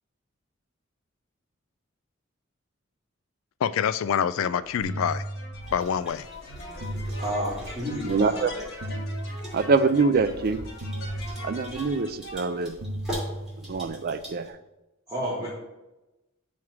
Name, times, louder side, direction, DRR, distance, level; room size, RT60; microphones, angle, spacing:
voice 1, 3.6-5.2 5.7-6.3, left 8 dB, 80° left, 0.3 m, -26 dB
sound 1, 4.4-12.6, left 1 dB, 55° left, 1.4 m, -41 dB
sound 2, 4.8-6.0 6.8-8.0 8.8-10.0 10.8-12.0 12.8-14.0, right 1 dB, 80° right, 0.8 m, -35 dB
sound 3, 5.6-14.5, equal, 5° right, 2.6 m, -43 dB
voice 2, 7.2-8.4 15.1-15.5, equal, 20° right, 1.8 m, -30 dB
voice 3, 8.0-8.5 9.5-10.7 11.4-12.8 13.6-14.5, right 4 dB, 50° right, 0.4 m, -24 dB
7.1 x 3.2 x 6.0 m
head